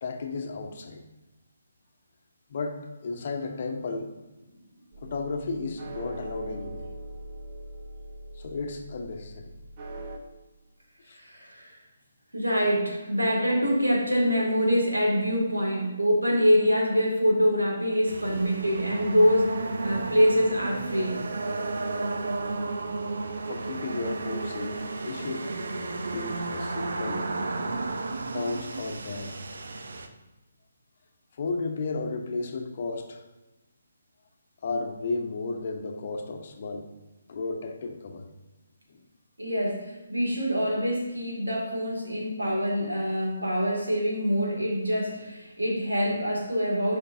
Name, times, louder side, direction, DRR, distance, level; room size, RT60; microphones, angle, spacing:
voice 1, 0.0-1.0 2.5-4.1 5.0-6.9 8.3-9.5 11.1-11.2 23.5-25.5 26.1-27.3 28.3-29.3 31.3-33.2 34.6-36.9 37.3-38.3 38.9-39.0, left 3 dB, 45° left, 4 dB, 0.9 m, -33 dB
sound 1, 4.9-10.2, right 1 dB, 35° right, 1.0 m, -41 dB
voice 2, 11.1-11.8 12.3-21.3 39.4-47.0, equal, 85° right, -2 dB, 2.3 m, -25 dB
sound 2, 18.1-30.1, right 3 dB, 60° right, 0.7 m, -33 dB
11.5 x 5.2 x 2.7 m, 1.1 s
figure-of-eight pair, 140°, 0 cm